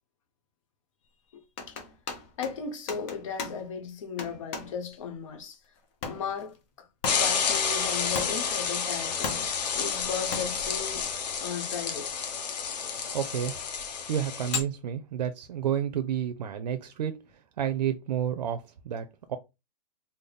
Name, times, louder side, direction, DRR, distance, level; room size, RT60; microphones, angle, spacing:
voice 1, 1.3-1.8 2.4-5.6 6.1-6.9 7.1-9.4 9.7-11.1 11.4-12.3, left 6 dB, 50° left, 0.9 m, -36 dB
sound 1, 1.6-3.8 4.2-4.8 5.8-6.6 7.0-7.5 8.1-8.6 9.2-9.8 10.3-10.7 11.8-11.9 12.4-12.5 13.1-13.6 14.4-14.6, left 5 dB, 20° left, 0.4 m, -36 dB
sound 2, 7.0-14.6, left 6 dB, 90° left, 1.0 m, -30 dB
voice 2, 13.1-13.6 14.1-17.2 17.6-19.4, right 9 dB, 90° right, 0.5 m, -30 dB
3.4 x 2.0 x 3.8 m
hypercardioid pair, 170°, 21 cm